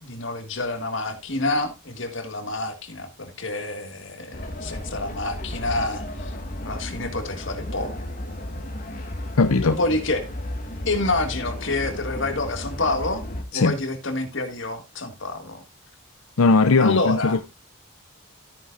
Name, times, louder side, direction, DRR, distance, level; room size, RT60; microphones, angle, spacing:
voice 1, 0.0-6.3 6.7-7.9 9.5-10.3 10.9-13.2 13.5-15.6 16.8-17.4, left 2 dB, 60° left, 1.8 m, -28 dB
sound 1, 4.3-13.4, left 1 dB, 40° left, 1.8 m, -34 dB
voice 2, 9.4-9.8 13.5-13.8 16.4-17.4, left 3 dB, 90° left, 0.6 m, -18 dB
13.0 x 9.3 x 2.5 m
head